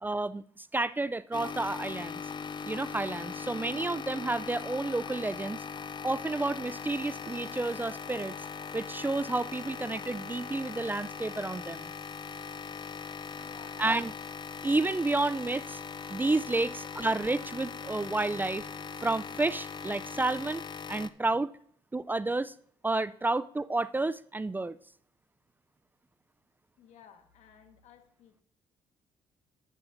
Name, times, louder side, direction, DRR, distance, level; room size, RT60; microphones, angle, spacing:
voice 1, 0.0-2.2 2.6-5.6 6.0-8.3 8.7-11.9 13.8-14.1 14.6-15.8 16.1-18.7 19.0-20.6 20.9-21.5 21.9-22.5 22.8-24.8, right 2 dB, 15° right, 0.4 m, -30 dB
sound 1, 1.3-21.1, left 6 dB, 40° left, 0.5 m, -40 dB
sound 2, 6.6-21.1, equal, ahead, 4.5 m, -58 dB
voice 2, 13.3-13.8 26.8-28.4, left 8 dB, 80° left, 1.4 m, -56 dB
11.5 x 9.7 x 2.6 m
supercardioid pair, 70°, 12 cm